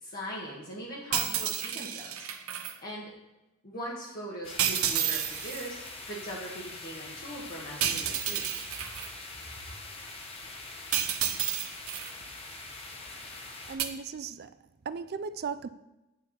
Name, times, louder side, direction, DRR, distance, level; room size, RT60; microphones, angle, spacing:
voice 1, 0.0-2.3 2.8-3.1 3.6-8.5, equal, 45° left, 1.7 m, -40 dB
sound 1, 1.1-2.7 4.6-5.7 7.8-9.1 10.9-12.1 13.8-13.9, right 9 dB, 85° right, 0.9 m, -30 dB
sound 2, 4.4-13.8, left 2 dB, 30° left, 1.2 m, -43 dB
voice 2, 13.3-14.6 14.9-15.7, right 5 dB, 50° right, 0.4 m, -37 dB
9.3 x 4.7 x 7.3 m
head